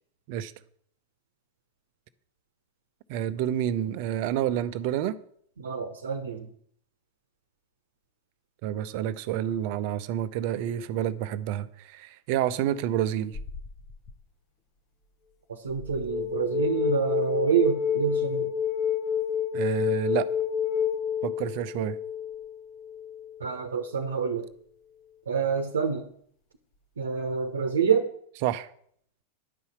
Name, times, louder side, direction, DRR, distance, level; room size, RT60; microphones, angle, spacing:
voice 1, 3.1-5.2 8.6-13.4 19.5-20.3 21.2-22.0 28.4-28.7, right 11 dB, 45° right, 0.6 m, -29 dB
voice 2, 5.6-6.5 15.5-18.5 23.4-24.5 25.3-26.0 27.0-28.1, right 6 dB, 70° right, 1.0 m, -27 dB
sound 1, 13.3-14.1 15.8-23.4, left 8 dB, 35° left, 0.9 m, -29 dB
10.5 x 5.6 x 7.9 m
figure-of-eight pair, 90°, 0 cm